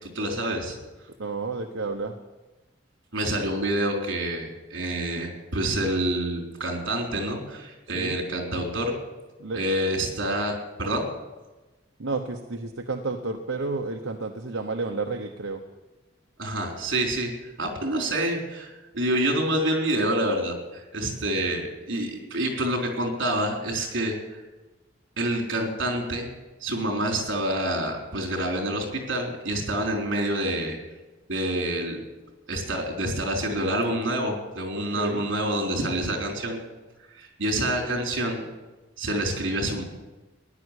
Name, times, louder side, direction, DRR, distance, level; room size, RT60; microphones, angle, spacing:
voice 1, 0.0-0.8 3.1-8.9 9.5-11.1 16.4-17.3 17.6-24.2 25.2-26.3 26.6-30.8 31.3-32.0 32.5-36.6 37.1-38.4 39.0-39.8, right 1 dB, 65° right, 2 dB, 4.0 m, -27 dB
voice 2, 1.2-2.2 7.9-8.2 9.4-9.6 12.0-15.6 34.7-35.2, right 3 dB, 85° right, 3 dB, 1.1 m, -31 dB
16.0 x 11.0 x 8.3 m, 1.2 s
head